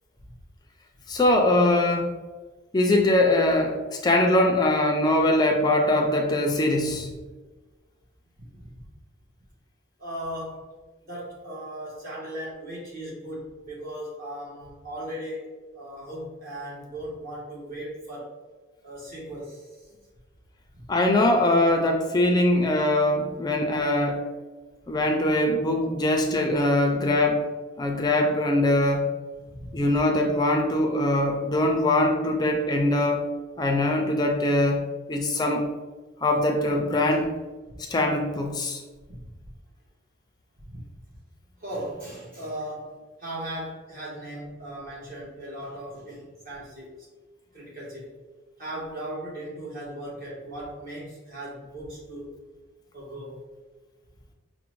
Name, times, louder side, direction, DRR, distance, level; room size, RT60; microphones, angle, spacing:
voice 1, 1.1-2.1 2.7-7.1 20.9-24.2 24.9-27.4 27.8-29.1 29.7-33.2 33.6-34.8 35.1-35.7 36.2-37.3 37.8-38.8, left 1 dB, 20° left, 2 dB, 0.3 m, -22 dB
voice 2, 8.4-8.7 10.0-10.6 11.0-15.5 15.7-18.3 18.8-19.9 20.7-20.9 25.7-25.9 29.3-29.9 37.6-37.8 39.2-39.3 40.6-40.9 41.6-46.9 47.5-48.1 48.6-52.4 52.9-53.4, right 1 dB, 45° right, -6 dB, 1.1 m, -37 dB
5.8 x 2.1 x 3.1 m, 1.3 s
head